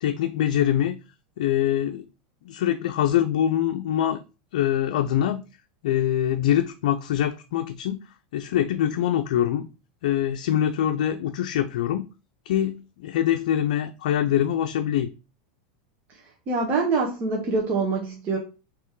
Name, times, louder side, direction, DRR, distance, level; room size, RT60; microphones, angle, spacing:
voice 1, 0.0-0.9 1.4-2.0 2.4-4.2 4.5-5.4 5.8-8.0 8.3-9.7 10.0-12.1 12.5-15.1, left 11 dB, 75° left, 0.4 m, -24 dB
voice 2, 16.5-18.4, right 3 dB, 35° right, 1.1 m, -25 dB
3.6 x 3.0 x 4.5 m
supercardioid pair, 125°, 4 cm